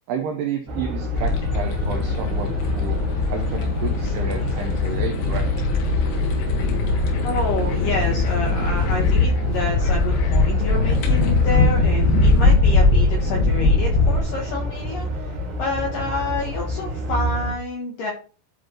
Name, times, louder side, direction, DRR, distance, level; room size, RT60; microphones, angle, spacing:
voice 1, 0.1-3.0 3.3-5.5, right 6 dB, 80° right, 4 dB, 2.3 m, -30 dB
sound 1, 0.7-17.5, right 1 dB, 55° right, 1.6 m, -28 dB
sound 2, 1.1-14.2, left 3 dB, 90° left, 4.4 m, -21 dB
voice 2, 7.2-18.1, left 3 dB, 70° left, -1 dB, 2.0 m, -28 dB
13.5 x 4.9 x 3.0 m, 0.38 s
omnidirectional pair, 5.9 m